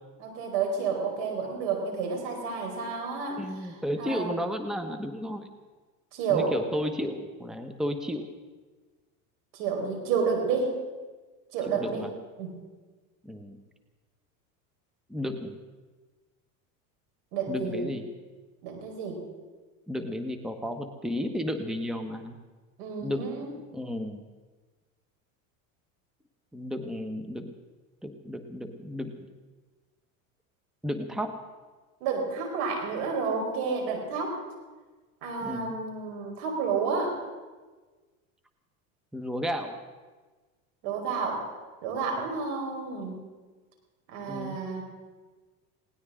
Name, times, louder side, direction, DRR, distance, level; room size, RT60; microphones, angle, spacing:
voice 1, 0.2-4.4 6.1-6.5 9.5-10.8 11.5-12.0 12.4-12.5 17.3-17.9 18.6-19.2 22.8-23.5 32.0-34.4 35.2-37.2 40.8-41.5 41.8-43.2 44.1-44.8, right 5 dB, 75° right, 2 dB, 4.9 m, -30 dB
voice 2, 3.4-5.5 6.3-8.3 11.7-12.1 13.2-13.6 15.1-15.6 17.5-18.0 19.9-22.3 23.0-23.4 23.7-24.2 26.5-27.5 28.0-29.1 30.8-31.3 35.4-35.8 39.1-39.8 44.3-44.6, equal, ahead, 6 dB, 1.1 m, -33 dB
20.0 x 18.5 x 3.8 m, 1.3 s
supercardioid pair, 110°, 42 cm